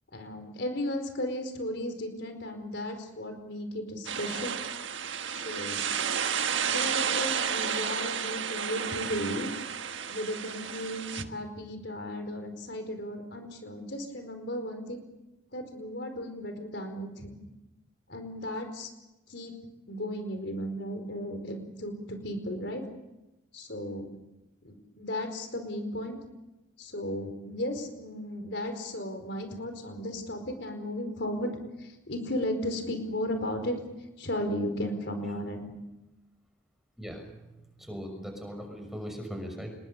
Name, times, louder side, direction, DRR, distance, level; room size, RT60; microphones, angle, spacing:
voice 1, 0.1-4.6 5.3-5.8 6.7-9.5 10.1-15.0 15.5-17.4 18.1-18.9 19.3-19.5 19.9-22.8 23.5-24.1 24.6-26.2 26.8-33.7 34.2-35.7, left 1 dB, 65° left, 6 dB, 4.8 m, -35 dB
sound 1, 4.1-11.2, right 7 dB, 75° right, 1.5 m, -32 dB
voice 2, 37.0-39.7, equal, ahead, 3 dB, 6.2 m, -40 dB
27.0 x 22.5 x 6.8 m, 0.96 s
head